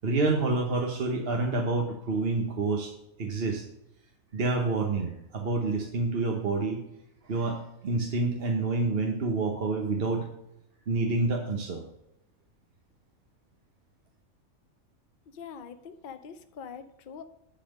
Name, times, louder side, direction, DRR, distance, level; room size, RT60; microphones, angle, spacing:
voice 1, 0.0-2.9 3.2-3.6 4.3-6.8 7.2-10.3 10.9-11.8, right 3 dB, 45° right, 2 dB, 1.1 m, -28 dB
voice 2, 15.3-17.2, left 6 dB, 45° left, 9 dB, 0.7 m, -43 dB
10.0 x 4.2 x 6.4 m, 0.86 s
omnidirectional pair, 1.5 m